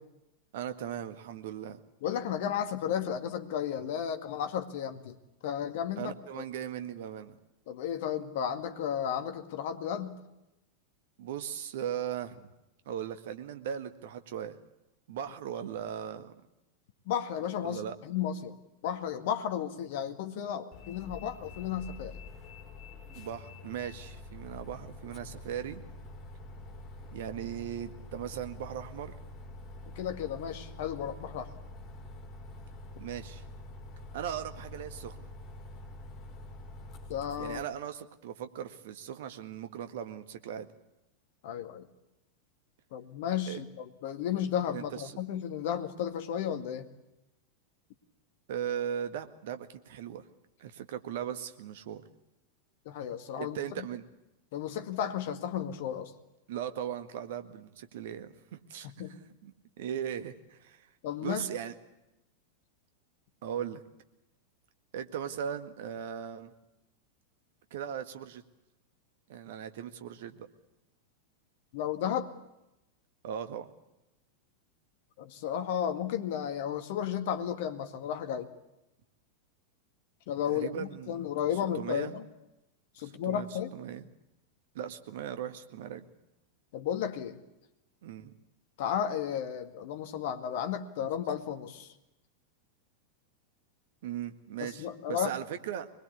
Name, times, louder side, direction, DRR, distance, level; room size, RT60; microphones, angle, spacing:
voice 1, 0.5-1.8 6.0-7.4 11.2-12.5 12.9-14.6 15.1-16.3 17.6-18.0 23.2-25.8 27.1-29.1 33.0-33.4 34.1-35.3 37.4-40.7 43.5-43.6 44.7-45.2 48.5-50.2 50.6-52.0 53.4-54.0 56.5-58.9 59.4-59.5 59.8-60.9 61.2-61.7 63.4-63.8 64.9-66.5 67.7-68.4 69.3-70.5 73.2-73.7 80.5-81.2 81.8-82.1 83.0-83.5 83.7-84.1 84.7-86.1 88.0-88.3 94.0-95.9, right 9 dB, 55° right, 9 dB, 1.8 m, -38 dB
voice 2, 2.0-5.2 5.4-6.4 7.7-10.2 17.1-18.6 18.8-22.2 29.9-31.5 37.1-37.6 41.4-41.8 42.9-46.9 52.9-53.9 54.5-56.1 59.0-59.2 61.0-61.5 71.7-72.3 75.2-78.5 80.3-82.3 83.0-83.7 86.7-87.4 88.8-91.9 94.6-95.3, left 9 dB, 50° left, 8 dB, 2.1 m, -33 dB
Bus, 20.7-37.6, left 2 dB, 30° left, 5.1 m, -46 dB
23.5 x 21.5 x 8.5 m, 0.93 s
figure-of-eight pair, 90°, 0 cm